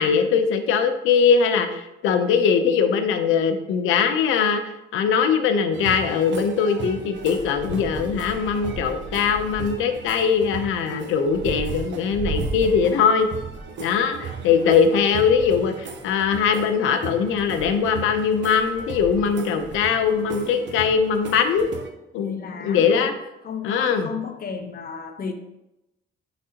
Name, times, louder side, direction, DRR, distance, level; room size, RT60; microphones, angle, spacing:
voice 1, 0.0-4.6 4.9-13.3 13.8-21.7 22.1-23.1 23.6-24.1, left 6 dB, 90° left, 7 dB, 0.7 m, -21 dB
sound 1, 5.7-21.9, right 4 dB, 65° right, 1.0 m, -35 dB
voice 2, 14.0-14.4 22.2-23.1 23.4-25.3, left 6 dB, 45° left, 6 dB, 1.0 m, -34 dB
10.0 x 4.0 x 2.9 m, 0.93 s
cardioid pair, 90°, 20 cm